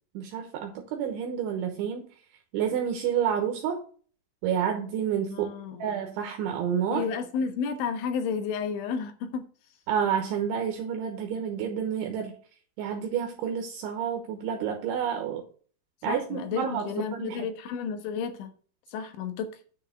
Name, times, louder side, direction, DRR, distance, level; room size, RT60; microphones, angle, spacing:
voice 1, 0.1-2.1 2.5-3.8 4.4-5.5 5.8-7.0 9.9-12.3 12.8-15.4 16.0-17.5, right 8 dB, 75° right, 3.2 m, -29 dB
voice 2, 5.3-5.9 6.9-9.5 16.0-18.5 18.9-19.5, left 6 dB, 75° left, 3.4 m, -32 dB
9.8 x 4.6 x 6.4 m
omnidirectional pair, 5.9 m